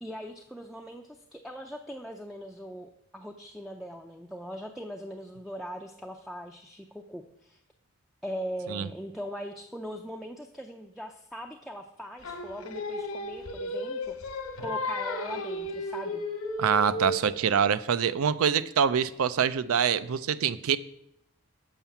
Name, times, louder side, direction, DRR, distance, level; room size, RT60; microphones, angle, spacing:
voice 1, 0.0-7.6 8.2-14.2 14.6-16.3, equal, ahead, 3 dB, 0.4 m, -40 dB
Singing, 12.2-17.4, left 1 dB, 75° left, 1.2 m, -34 dB
voice 2, 16.6-20.8, right 7 dB, 75° right, 16 dB, 0.4 m, -25 dB
7.3 x 5.5 x 7.0 m, 0.79 s
head